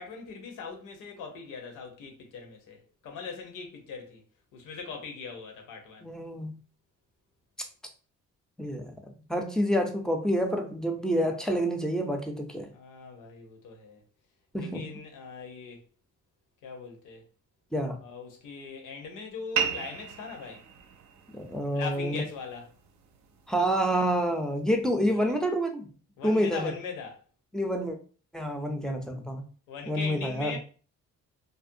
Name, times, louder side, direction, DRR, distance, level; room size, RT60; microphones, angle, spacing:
voice 1, 0.0-2.8 3.0-4.2 4.5-6.1 11.0-11.1 12.7-14.0 14.6-15.8 16.6-17.2 18.0-20.6 21.7-22.7 25.1-25.3 26.2-27.2 29.7-30.6, left 4 dB, 90° left, 0.8 m, -40 dB
voice 2, 6.0-6.5 8.6-9.0 9.3-12.7 14.5-14.9 17.7-18.0 21.3-22.2 23.5-25.9 26.2-26.7 27.5-28.0 28.3-29.4 29.9-30.6, equal, ahead, 0.4 m, -28 dB
sound 1, 19.6-24.6, right 8 dB, 70° right, 0.5 m, -37 dB
2.5 x 2.1 x 2.6 m
cardioid pair, 90°, 30 cm